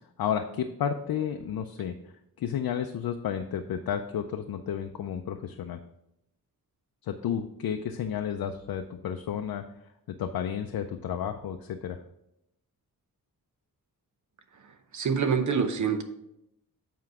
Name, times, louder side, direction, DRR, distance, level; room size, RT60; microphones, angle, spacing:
voice 1, 0.2-2.0 2.4-5.8 7.0-9.6 10.1-12.0, left 8 dB, 75° left, 6 dB, 0.5 m, -32 dB
voice 2, 14.6-16.0, right 6 dB, 55° right, 7 dB, 0.8 m, -27 dB
7.7 x 4.7 x 4.7 m, 0.83 s
wide cardioid pair, 180°, 36 cm